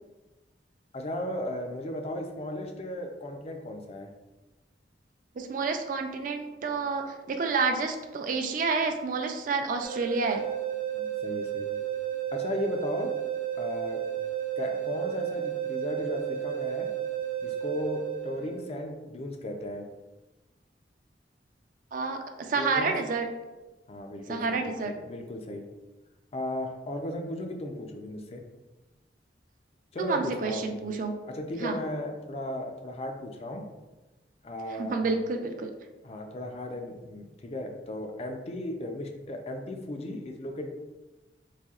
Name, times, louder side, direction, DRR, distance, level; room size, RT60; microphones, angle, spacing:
voice 1, 0.9-4.1 10.9-11.8 12.3-13.1 13.6-14.0 14.6-16.9 17.4-19.9 22.5-22.9 23.9-25.6 26.3-28.4 29.9-30.7 31.3-33.6 34.4-35.0 36.0-40.6, left 1 dB, 35° left, 4 dB, 0.4 m, -35 dB
voice 2, 5.4-10.4 21.9-23.3 24.3-24.9 30.0-31.1 31.6-31.8 34.8-35.7, right 4 dB, 50° right, 5 dB, 0.4 m, -29 dB
sound 1, 9.8-18.8, right 10 dB, 65° right, 1.1 m, -33 dB
4.2 x 2.7 x 2.4 m, 1.1 s
head